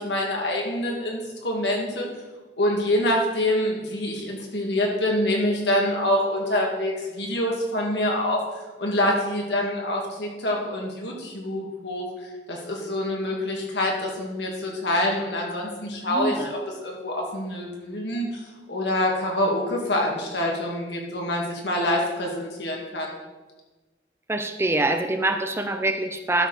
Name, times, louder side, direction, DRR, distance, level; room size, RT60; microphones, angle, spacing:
voice 1, 0.0-2.1 2.6-8.4 8.8-12.1 12.5-23.1, left 1 dB, 65° left, -1 dB, 2.3 m, -26 dB
voice 2, 16.0-16.5 24.3-26.5, right 2 dB, 15° right, 6 dB, 0.5 m, -25 dB
12.5 x 5.1 x 5.8 m, 1.2 s
head